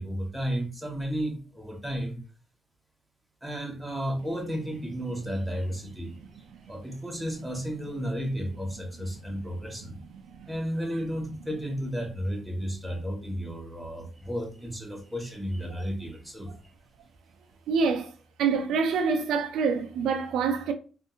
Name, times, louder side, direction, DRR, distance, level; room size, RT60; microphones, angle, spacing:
voice 1, 0.0-2.2 3.4-10.0 10.5-16.5, equal, 5° right, 1.1 m, -33 dB
voice 2, 17.7-18.1 18.4-20.7, right 5 dB, 90° right, 0.4 m, -26 dB
3.4 x 2.5 x 2.7 m
cardioid pair, 85°, 0 cm